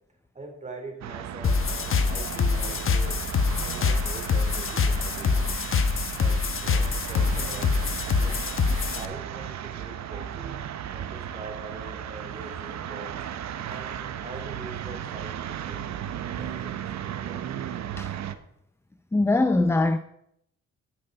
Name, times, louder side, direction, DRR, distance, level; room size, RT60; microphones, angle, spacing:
voice 1, 0.3-3.2 3.5-5.3 6.1-7.7 8.1-8.4 8.9-10.5 10.9-13.2 13.7-16.0 16.4-17.6, right 2 dB, 25° right, 3 dB, 3.3 m, -43 dB
sound 1, 1.0-18.4, right 10 dB, 65° right, 0.9 m, -35 dB
sound 2, 1.4-9.0, left 5 dB, 45° left, 1.0 m, -25 dB
voice 2, 19.1-20.0, left 2 dB, 10° left, 11 dB, 0.5 m, -21 dB
12.5 x 6.6 x 5.4 m, 0.76 s
cardioid pair, 90°, 30 cm